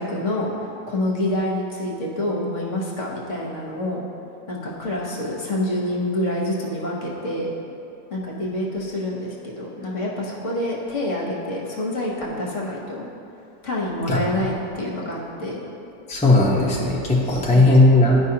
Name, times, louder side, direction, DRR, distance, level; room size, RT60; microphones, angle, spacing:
voice 1, 0.0-4.0 4.5-7.5 8.1-13.1 13.6-15.6 17.2-17.8, left 1 dB, 50° left, -3 dB, 1.3 m, -27 dB
voice 2, 16.1-18.2, left 2 dB, 10° left, -4 dB, 0.5 m, -16 dB
12.5 x 5.2 x 2.8 m, 2.7 s
omnidirectional pair, 1.8 m